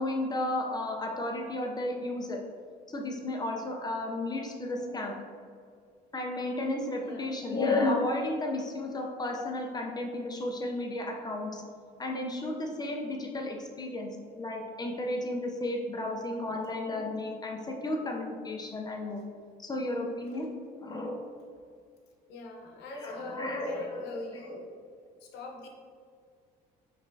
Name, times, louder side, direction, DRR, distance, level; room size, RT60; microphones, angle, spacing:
voice 1, 0.0-2.4 2.9-5.2 6.1-11.6 12.0-19.2 19.6-20.5 20.8-21.1 23.0-24.2 24.5-24.6, left 2 dB, 25° left, 2 dB, 0.5 m, -33 dB
voice 2, 7.0-7.3 20.3-20.5 22.3-24.8 25.2-25.9, left 2 dB, 85° left, 1 dB, 0.8 m, -43 dB
5.8 x 3.1 x 2.6 m, 2.1 s
cardioid pair, 110°, 17 cm